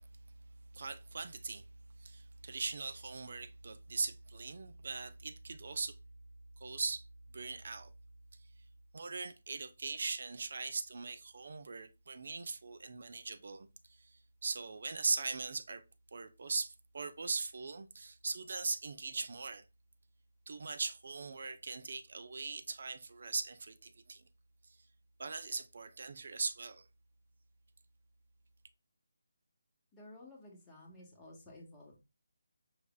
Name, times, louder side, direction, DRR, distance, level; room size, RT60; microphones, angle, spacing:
voice 1, 0.7-1.6 2.0-6.0 6.6-7.0 7.3-7.9 8.9-13.7 14.0-14.1 14.4-15.8 16.1-19.6 20.5-24.2 25.2-26.8, right 4 dB, 55° right, 0.5 m, -40 dB
voice 2, 29.9-32.0, left 1 dB, 10° left, 1.1 m, -54 dB
4.9 x 3.1 x 2.2 m
figure-of-eight pair, 155°, 0 cm